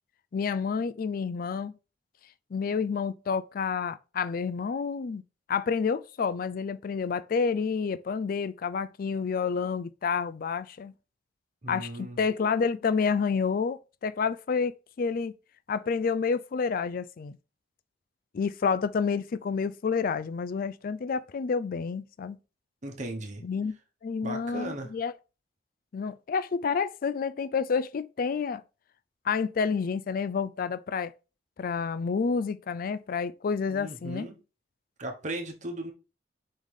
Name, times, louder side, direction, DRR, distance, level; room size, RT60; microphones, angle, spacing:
voice 1, 0.3-1.7 2.5-5.2 5.5-10.9 11.7-15.3 15.7-17.4 18.3-22.4 23.4-23.7 24.0-25.1 25.9-28.6 29.2-31.1 31.6-34.3, left 5 dB, 55° left, 0.4 m, -29 dB
voice 2, 11.6-12.2 22.8-23.4 24.2-24.9 33.7-34.3 35.0-35.9, right 1 dB, 45° right, 1.2 m, -37 dB
5.5 x 3.7 x 4.8 m
head